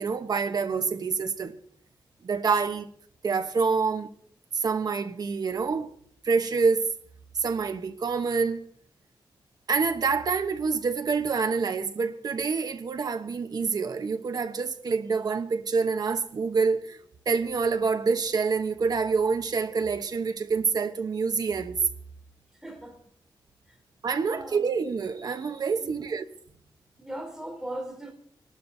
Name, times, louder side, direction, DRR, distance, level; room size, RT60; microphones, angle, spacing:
voice 1, 0.0-1.5 2.2-2.9 3.2-4.1 4.5-5.9 6.2-6.9 7.4-8.7 9.7-17.0 17.3-21.8 24.0-26.2, right 5 dB, 55° right, 1.0 m, -27 dB
voice 2, 22.6-23.0 23.7-23.8 24.2-24.7 25.8-26.0 27.0-28.1, right 1 dB, 5° right, 3.2 m, -38 dB
25.5 x 12.0 x 2.7 m
wide cardioid pair, 135°, 8 cm